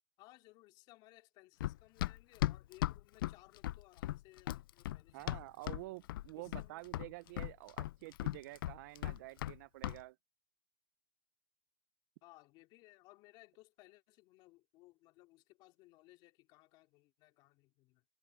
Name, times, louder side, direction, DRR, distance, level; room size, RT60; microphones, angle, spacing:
voice 1, 0.2-5.9 6.4-7.1 12.2-18.0, left 20 dB, 40° left, 3.0 m, -62 dB
Run, 1.6-5.8 6.1-6.7 6.9-9.6 9.8-10.0, left 15 dB, 70° left, 0.5 m, -37 dB
voice 2, 5.1-10.2, right 20 dB, 55° right, 0.6 m, -49 dB
supercardioid pair, 150°, 12 cm